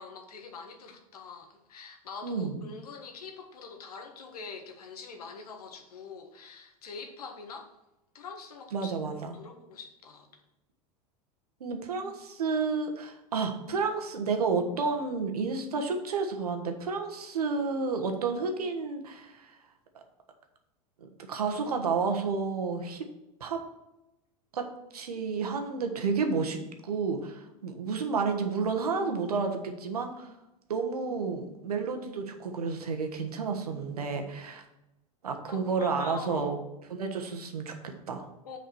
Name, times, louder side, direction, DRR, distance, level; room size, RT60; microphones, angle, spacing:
voice 1, 0.0-7.7 8.1-9.0 9.2-10.3 35.5-36.5 38.4-38.6, left 5 dB, 85° left, 4 dB, 1.5 m, -44 dB
voice 2, 2.2-2.6 8.7-9.3 11.6-19.5 21.0-23.1 23.4-23.6 24.5-24.7 24.9-30.3 30.7-34.6 35.2-36.6 36.9-38.3, right 4 dB, 90° right, 5 dB, 1.3 m, -31 dB
6.9 x 5.0 x 6.1 m, 0.92 s
hypercardioid pair, 100°, 19 cm